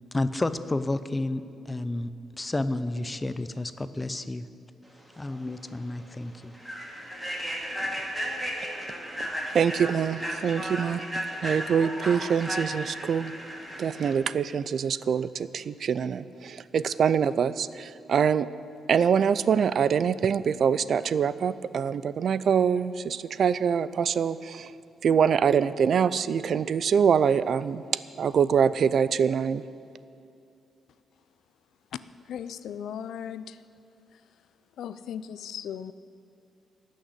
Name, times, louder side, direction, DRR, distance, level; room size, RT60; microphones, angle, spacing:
voice 1, 0.1-2.1 2.4-4.5 5.2-6.5, left 2 dB, 15° left, 12 dB, 0.6 m, -31 dB
Human voice / Train, 5.3-5.4 5.8-6.0 6.5-14.1, equal, 10° right, 2.2 m, -34 dB
voice 2, 9.5-11.0 11.4-13.3 13.8-18.5 18.9-24.7 25.0-27.8 28.2-29.6, right 7 dB, 55° right, 16 dB, 0.4 m, -24 dB
voice 3, 32.3-33.6 34.8-35.9, left 8 dB, 80° left, 14 dB, 0.4 m, -37 dB
17.5 x 6.4 x 8.0 m, 2.6 s
cardioid pair, 140°, 0 cm